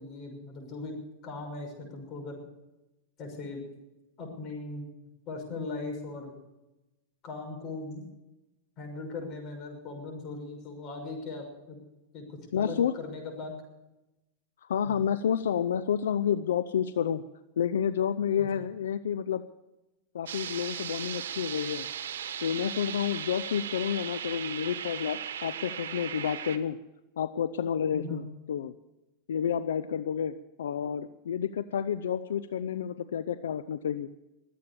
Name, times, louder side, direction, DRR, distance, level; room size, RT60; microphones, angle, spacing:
voice 1, 0.0-2.4 3.2-3.6 4.2-4.9 5.3-6.3 7.2-8.0 8.8-11.8 12.1-13.6 14.9-15.0 18.4-18.5 27.9-28.3, left 3 dB, 40° left, 3 dB, 6.2 m, -39 dB
voice 2, 12.5-12.9 14.7-17.2 17.6-19.4 20.1-21.9 22.4-26.8 27.2-28.7 29.3-34.1, left 8 dB, 85° left, 13 dB, 0.5 m, -30 dB
sound 1, 20.3-26.6, right 9 dB, 85° right, 1.3 m, -37 dB
22.5 x 8.6 x 7.0 m, 0.97 s
hypercardioid pair, 120°, 0 cm